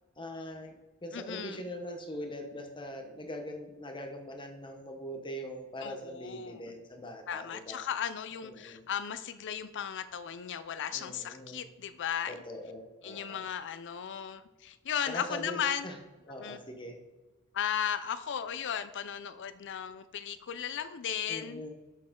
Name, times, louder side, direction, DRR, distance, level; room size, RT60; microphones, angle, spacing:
voice 1, 0.2-7.8 8.4-8.9 10.9-11.6 12.3-13.5 15.0-15.9 16.3-17.0 21.3-21.7, equal, 20° left, 4 dB, 1.0 m, -42 dB
voice 2, 1.1-1.6 5.8-6.7 7.3-12.3 13.0-15.9 16.4-16.6 17.5-21.6, left 8 dB, 55° left, 13 dB, 0.5 m, -36 dB
7.4 x 6.5 x 3.8 m, 1.1 s
head